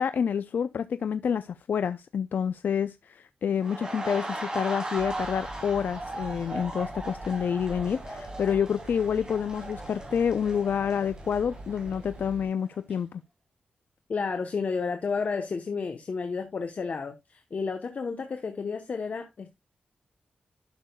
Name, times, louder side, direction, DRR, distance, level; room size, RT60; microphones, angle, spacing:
voice 1, 0.0-13.2, left 7 dB, 75° left, 0.4 m, -28 dB
sound 1, 3.6-12.4 12.7-12.9, right 2 dB, 25° right, 2.8 m, -38 dB
sound 2, 5.0-12.5, right 2 dB, 55° right, 4.4 m, -45 dB
voice 2, 14.1-19.5, left 5 dB, 55° left, 0.9 m, -31 dB
11.5 x 6.4 x 2.2 m
wide cardioid pair, 125°, 3 cm